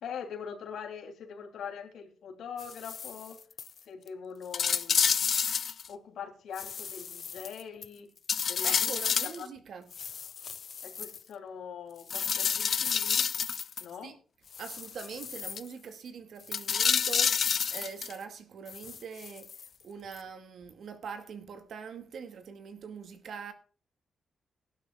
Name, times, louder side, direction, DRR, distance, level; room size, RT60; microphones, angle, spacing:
voice 1, 0.0-3.4 3.8-5.2 5.9-8.1 8.5-9.5 10.8-13.3 13.8-14.1, left 7 dB, 85° left, 3.2 m, -42 dB
sound 1, 2.6-3.3 3.6-3.7 4.1-4.2 4.5-5.9 6.6-7.9 8.3-9.4 9.9-11.2 12.1-13.8 14.5-15.6 16.5-18.2 18.7-19.7 20.1-20.2, left 7 dB, 55° left, 0.5 m, -30 dB
voice 2, 8.6-9.9 14.0-14.2 14.6-19.5 19.8-23.5, right 6 dB, 70° right, 2.2 m, -43 dB
18.5 x 11.5 x 2.4 m
cardioid pair, 115°, 0 cm